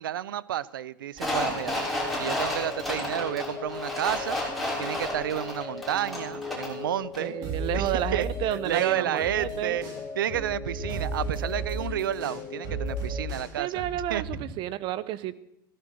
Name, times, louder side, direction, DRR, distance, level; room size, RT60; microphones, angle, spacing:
voice 1, 0.0-1.8 2.1-4.4 4.8-7.3 7.7-9.9 10.2-14.2, right 11 dB, 85° right, 21 dB, 0.6 m, -31 dB
sound 1, 1.2-6.8 7.1-7.2, left 1 dB, ahead, 5.9 m, -32 dB
sound 2, 1.6-13.3, left 5 dB, 20° left, 2.0 m, -39 dB
voice 2, 7.2-9.8 13.5-15.3, right 13 dB, 45° right, 17 dB, 1.0 m, -31 dB
sound 3, 7.4-9.5 9.8-14.4, right 2 dB, 65° right, 6.9 m, -34 dB
15.5 x 12.0 x 6.4 m, 0.80 s
hypercardioid pair, 110°, 11 cm